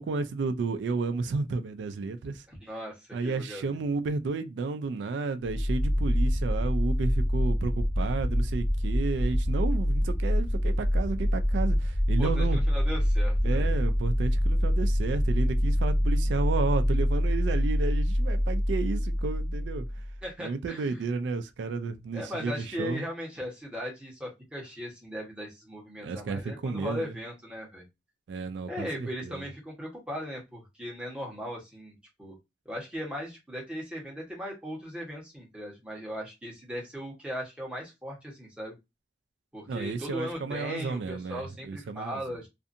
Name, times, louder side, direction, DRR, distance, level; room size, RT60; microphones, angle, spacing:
voice 1, 0.0-2.4 3.1-12.6 13.4-19.9 20.4-23.0 26.0-27.1 28.3-29.4 39.7-42.2, right 4 dB, 80° right, 0.3 m, -32 dB
voice 2, 2.5-3.8 12.2-13.8 20.2-21.1 22.1-27.8 28.7-32.4 32.6-38.7 39.5-42.5, equal, 5° right, 1.0 m, -38 dB
sound 1, 5.4-20.2, equal, 35° left, 0.6 m, -26 dB
2.5 x 2.5 x 2.5 m
head